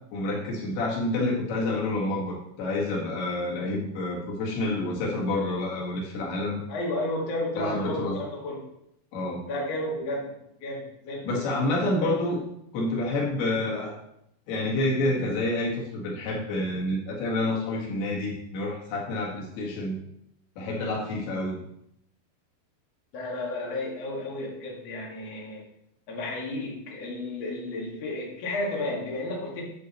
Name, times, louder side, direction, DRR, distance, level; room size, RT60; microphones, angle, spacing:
voice 1, 0.1-6.6 7.6-8.2 9.1-9.4 11.2-12.4 12.7-14.0 14.5-20.0 20.6-21.6, left 2 dB, 90° left, -3 dB, 3.9 m, -28 dB
voice 2, 6.7-8.6 9.5-10.3 10.6-11.5 12.0-12.1 13.4-13.6 23.1-25.6 26.1-29.6, left 1 dB, 45° left, -3 dB, 2.9 m, -32 dB
10.5 x 8.0 x 3.1 m, 0.76 s
omnidirectional pair, 4.4 m